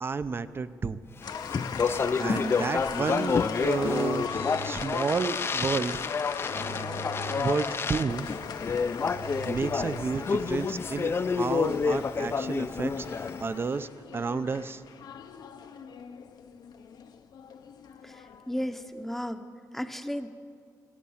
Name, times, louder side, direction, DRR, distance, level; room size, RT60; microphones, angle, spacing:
voice 1, 0.0-1.0 2.2-6.0 7.4-8.3 9.4-14.8, right 4 dB, 35° right, 14 dB, 0.6 m, -31 dB
sound 1, 1.2-18.9, left 7 dB, 75° left, 0.8 m, -40 dB
Speech, 1.2-13.6, left 5 dB, 35° left, 0.4 m, -29 dB
sound 2, 4.0-10.7, right 4 dB, 85° right, 1.1 m, -45 dB
voice 2, 18.0-19.4 19.7-20.3, equal, 5° left, 8 dB, 0.8 m, -34 dB
24.0 x 8.5 x 7.1 m, 2.1 s
wide cardioid pair, 130°, 7 cm